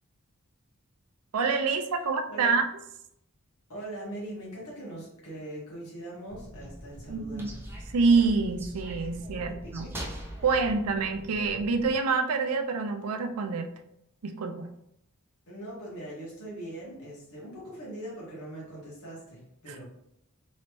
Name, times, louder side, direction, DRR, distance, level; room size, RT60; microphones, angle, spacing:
voice 1, 1.3-2.7 7.1-7.5 7.9-9.9 10.4-13.7 14.2-14.7 19.7-19.8, right 4 dB, 80° right, 6 dB, 0.4 m, -26 dB
voice 2, 2.3-2.6 3.7-7.6 9.3-9.9 15.5-19.8, right 1 dB, 75° left, -5 dB, 1.4 m, -41 dB
sound 1, 6.3-12.0, right 1 dB, 10° right, 0.5 m, -42 dB
3.1 x 2.9 x 3.0 m, 0.80 s
head